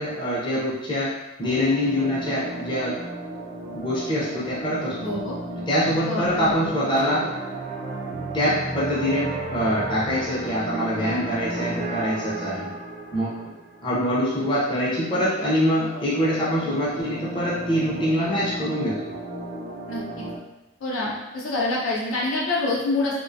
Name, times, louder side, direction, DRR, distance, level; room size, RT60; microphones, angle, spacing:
voice 1, 0.0-3.0 3.7-5.2 5.7-7.3 8.3-12.7 13.1-13.5 13.8-19.0, equal, 25° left, -7 dB, 0.4 m, -24 dB
sound 1, 1.4-14.0 15.9-20.4, right 2 dB, 45° right, 0.3 m, -34 dB
voice 2, 5.0-5.4 6.0-6.7 19.9-20.3 20.8-23.2, left 2 dB, 75° left, -4 dB, 0.6 m, -26 dB
2.4 x 2.1 x 2.5 m, 1.0 s
head